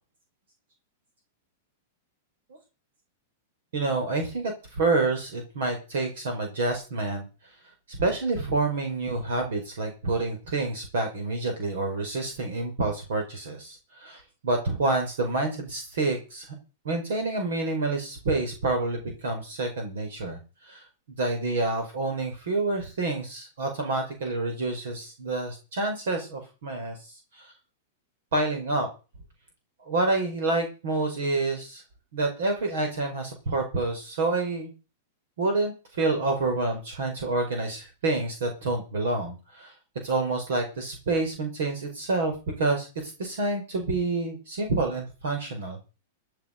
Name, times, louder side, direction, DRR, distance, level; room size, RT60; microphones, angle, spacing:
voice 1, 3.7-7.6 7.9-16.5 16.8-20.9 21.2-27.5 28.3-28.9 29.8-31.8 32.1-34.7 35.4-39.7 40.0-45.8, right 2 dB, 70° right, 4 dB, 5.3 m, -28 dB
14.0 x 10.5 x 5.4 m, 0.33 s
hypercardioid pair, 110°, 0 cm